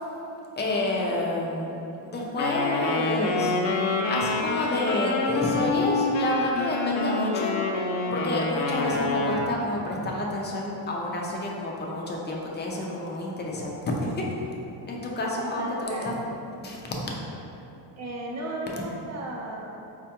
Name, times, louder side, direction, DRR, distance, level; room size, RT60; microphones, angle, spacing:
voice 1, 0.6-3.5 4.1-7.5 8.1-14.2 14.9-16.1 16.6-17.0, left 2 dB, 25° left, -2 dB, 0.4 m, -29 dB
Wind instrument woodwind instrument, 2.4-9.5, left 3 dB, 90° left, 0.6 m, -27 dB
voice 2, 15.4-16.1 18.0-19.8, right 1 dB, 35° right, -2 dB, 0.6 m, -35 dB
4.1 x 2.3 x 2.8 m, 2.8 s
cardioid pair, 115°, 46 cm